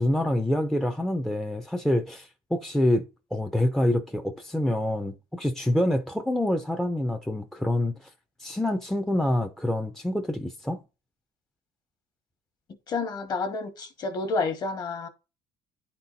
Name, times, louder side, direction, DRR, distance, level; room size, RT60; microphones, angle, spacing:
voice 1, 0.0-8.1 8.4-10.8, left 1 dB, 5° left, 0.5 m, -26 dB
voice 2, 12.9-15.1, left 3 dB, 35° left, 1.2 m, -29 dB
10.5 x 4.3 x 3.9 m
cardioid pair, 155°, 12 cm